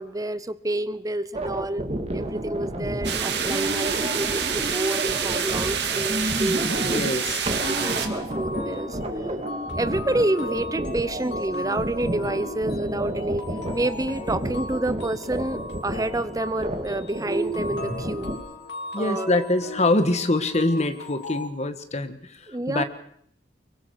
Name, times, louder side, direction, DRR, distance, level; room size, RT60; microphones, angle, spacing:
voice 1, 0.0-1.8 2.1-7.2 7.7-9.0 9.8-13.5 13.7-18.3 19.0-19.4 22.5-22.8, right 1 dB, 20° right, 14 dB, 0.8 m, -28 dB
sound 1, 1.3-18.4, right 1 dB, 35° right, 2.3 m, -31 dB
sound 2, 3.0-8.1, right 7 dB, 70° right, 2.1 m, -27 dB
sound 3, 6.7-21.5, left 2 dB, 70° left, 3.7 m, -38 dB
voice 2, 6.9-7.5 18.9-22.8, left 2 dB, 40° left, 9 dB, 1.5 m, -24 dB
24.5 x 23.0 x 4.9 m, 0.66 s
head